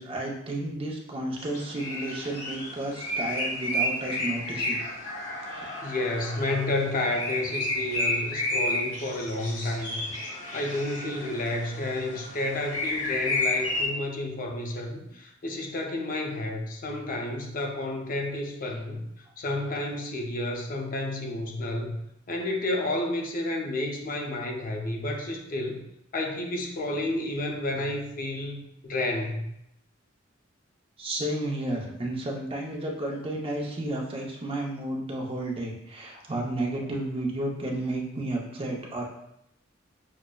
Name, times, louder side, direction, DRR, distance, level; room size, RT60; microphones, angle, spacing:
voice 1, 0.0-4.8 5.4-5.8 31.0-39.0, right 1 dB, 30° right, -1 dB, 0.6 m, -32 dB
sound 1, 1.4-13.9, left 1 dB, 70° left, 1.1 m, -31 dB
voice 2, 5.8-19.1 19.4-22.0 22.3-25.9 26.1-29.5, left 1 dB, 45° left, 1 dB, 0.6 m, -31 dB
6.1 x 2.0 x 2.3 m, 0.78 s
head